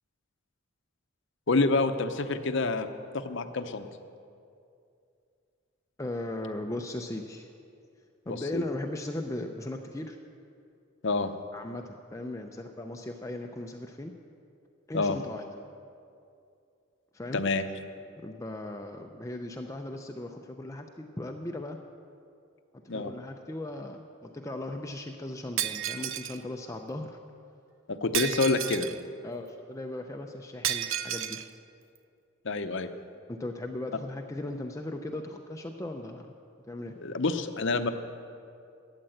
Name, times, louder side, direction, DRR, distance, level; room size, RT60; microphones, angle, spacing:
voice 1, 1.5-2.9 3.1-3.9 8.3-8.6 11.0-11.3 14.9-15.2 17.3-17.6 22.9-23.1 27.9-28.9 32.4-32.9 36.9-37.9, left 3 dB, 60° left, 8 dB, 0.7 m, -27 dB
voice 2, 6.0-7.5 8.3-10.2 11.5-14.1 14.9-15.4 17.1-17.4 18.2-21.8 22.7-27.2 29.2-31.4 33.3-36.3 36.7-37.0, left 1 dB, 15° left, 3 dB, 0.5 m, -37 dB
Shatter, 25.6-26.4 28.1-29.0 30.6-31.5, right 10 dB, 70° right, 0.5 m, -31 dB
13.0 x 8.9 x 7.8 m, 2.5 s
head